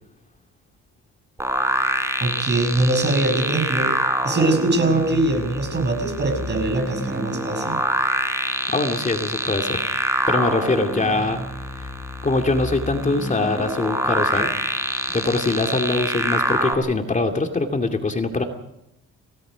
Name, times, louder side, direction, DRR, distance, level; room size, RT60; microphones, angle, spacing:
sound 1, 1.4-16.7, right 1 dB, 10° right, 4.3 m, -25 dB
voice 1, 2.2-4.0 4.2-7.8, right 2 dB, 35° right, 6 dB, 6.4 m, -22 dB
voice 2, 8.7-9.8 10.3-11.4 11.8-11.9 12.2-14.5 15.1-18.4, left 2 dB, 25° left, 4 dB, 2.5 m, -23 dB
29.5 x 18.0 x 5.2 m, 0.80 s
cardioid pair, 90°, 30 cm